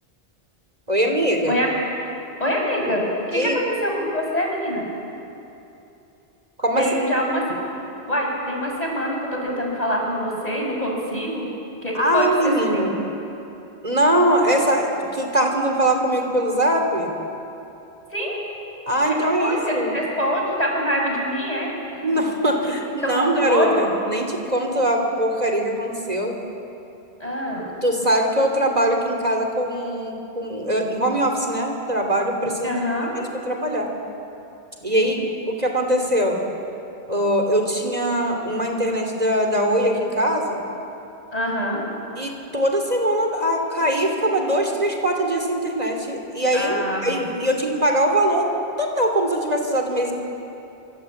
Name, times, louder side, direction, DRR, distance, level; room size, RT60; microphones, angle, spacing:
voice 1, 0.9-1.6 3.3-3.6 6.6-6.8 11.9-12.9 13.8-17.1 18.9-19.9 22.0-26.3 27.8-32.9 33.1-33.9 34.8-36.4 37.1-40.6 42.2-48.4 48.8-50.1, right 1 dB, 40° right, 2 dB, 3.1 m, -22 dB
voice 2, 2.4-4.8 6.8-7.4 8.1-11.5 11.8-12.9 18.1-18.4 19.1-21.7 22.1-22.2 23.0-23.9 27.2-27.7 32.6-33.1 35.0-35.2 41.3-41.8 46.5-47.3, equal, 40° left, -1 dB, 6.2 m, -25 dB
27.0 x 26.0 x 8.5 m, 2.8 s
omnidirectional pair, 1.0 m